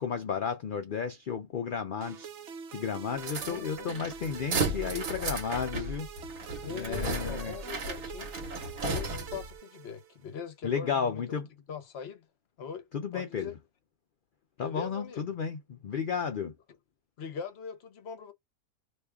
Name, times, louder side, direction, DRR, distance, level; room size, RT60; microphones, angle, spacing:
voice 1, 0.0-2.3 2.7-6.1 6.7-7.5 10.6-11.5 12.9-13.6 14.6-16.6, left 6 dB, 85° left, 0.4 m, -33 dB
sound 1, 2.0-10.3, right 7 dB, 60° right, 0.9 m, -45 dB
sound 2, 3.2-9.5, right 3 dB, 75° right, 1.6 m, -35 dB
voice 2, 3.4-3.9 6.5-11.4 11.7-12.3 12.6-12.9 13.1-13.5 14.6-15.2 17.2-18.3, left 6 dB, 50° left, 0.9 m, -41 dB
3.1 x 2.3 x 3.3 m
omnidirectional pair, 1.5 m